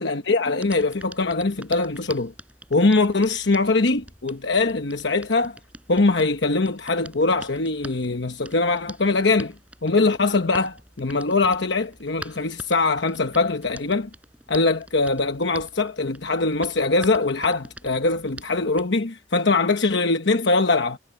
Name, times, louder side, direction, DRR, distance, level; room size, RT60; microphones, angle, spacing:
voice 1, 0.0-2.3 2.7-5.6 5.9-9.5 9.8-14.1 14.5-21.0, left 3 dB, 70° left, 1.1 m, -22 dB
Hands, 0.6-18.9, right 1 dB, 10° right, 6.0 m, -45 dB
head